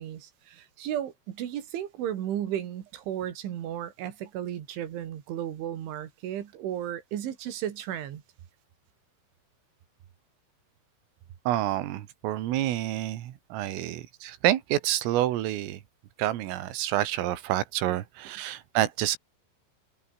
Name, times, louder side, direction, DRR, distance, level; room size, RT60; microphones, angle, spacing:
voice 1, 0.0-8.2, right 11 dB, 70° right, 4.6 m, -34 dB
voice 2, 11.5-15.8 16.2-19.2, right 13 dB, 85° right, 4.4 m, -28 dB
omnidirectional pair, 5.8 m